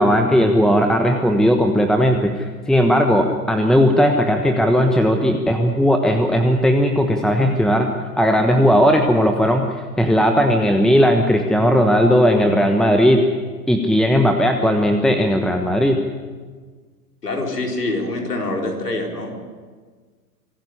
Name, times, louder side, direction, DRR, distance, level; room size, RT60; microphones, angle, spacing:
voice 1, 0.0-7.9 8.2-13.2 13.7-16.0, equal, ahead, 4 dB, 1.2 m, -17 dB
voice 2, 17.2-19.3, left 2 dB, 90° left, 1 dB, 4.4 m, -25 dB
26.0 x 11.5 x 9.9 m, 1.5 s
hypercardioid pair, 105°, 46 cm